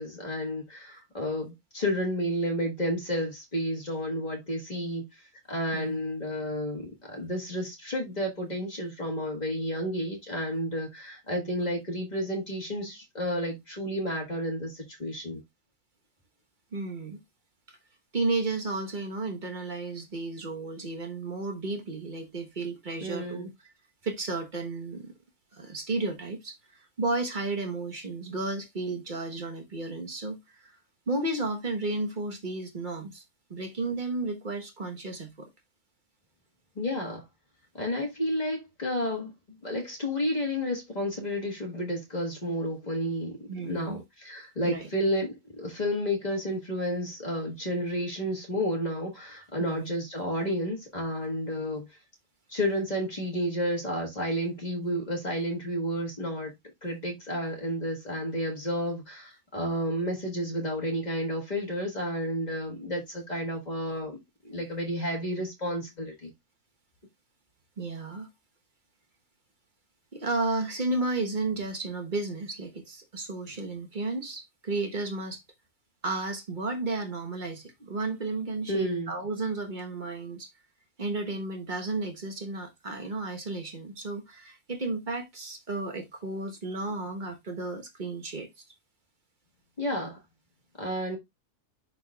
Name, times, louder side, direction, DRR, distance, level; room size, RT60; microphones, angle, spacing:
voice 1, 0.0-5.0 5.5-15.4 23.0-23.5 36.7-37.2 37.7-39.3 39.6-51.9 52.5-56.5 56.8-64.2 64.4-66.3 78.7-79.1 89.8-90.2 90.8-91.2, equal, 30° left, 1.7 m, -31 dB
voice 2, 16.7-17.2 18.1-23.5 24.0-25.1 25.5-30.7 31.1-33.2 33.5-35.5 43.5-44.0 44.6-44.9 49.6-49.9 67.8-68.3 70.1-75.4 76.0-80.5 81.0-88.5, right 3 dB, 35° right, 1.2 m, -33 dB
11.0 x 4.0 x 2.3 m
omnidirectional pair, 1.5 m